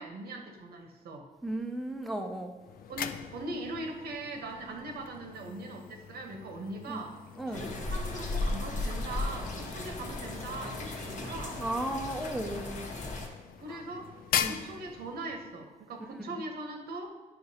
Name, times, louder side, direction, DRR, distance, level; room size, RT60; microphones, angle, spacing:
voice 1, 0.0-1.3 2.9-7.2 7.5-11.6 13.6-14.1 14.4-17.1, right 2 dB, 80° right, 3 dB, 1.0 m, -40 dB
voice 2, 1.4-2.5 6.9-7.0 7.4-7.7 11.6-12.9 13.7-13.8 14.4-14.6 16.3-16.4, right 1 dB, ahead, 3 dB, 0.4 m, -35 dB
sound 1, 2.6-15.6, left 9 dB, 70° left, 0.4 m, -41 dB
sound 2, 7.5-13.3, left 2 dB, 55° left, 1.0 m, -36 dB
9.0 x 5.7 x 2.8 m, 1.2 s
wide cardioid pair, 150°, 16 cm